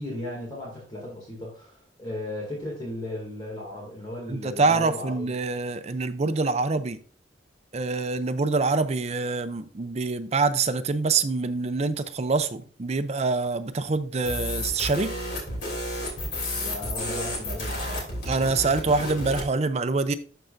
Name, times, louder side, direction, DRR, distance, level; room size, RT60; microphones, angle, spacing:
voice 1, 0.0-5.3 16.5-18.1, left 1 dB, 25° left, 2.3 m, -36 dB
voice 2, 4.3-7.0 7.7-15.1 18.3-20.1, right 3 dB, 35° right, 0.5 m, -25 dB
sound 1, 14.2-19.5, left 1 dB, 60° left, 3.1 m, -31 dB
12.0 x 4.5 x 2.6 m
head